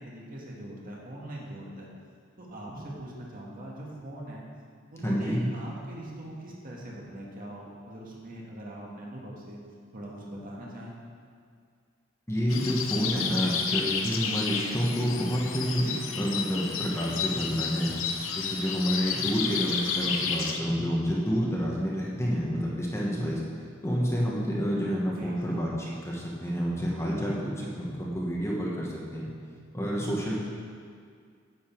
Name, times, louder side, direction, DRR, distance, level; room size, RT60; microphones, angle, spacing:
voice 1, 0.0-1.9 2.4-4.5 4.9-9.6 9.9-11.0 25.1-25.7, right 1 dB, 45° right, -4 dB, 1.9 m, -41 dB
voice 2, 5.0-5.4 12.3-17.9 18.3-23.4 23.8-29.3 29.7-30.4, equal, 15° left, -4 dB, 1.3 m, -29 dB
sound 1, 12.5-20.6, left 6 dB, 75° left, 0.8 m, -31 dB
9.9 x 8.1 x 4.6 m, 2.1 s
head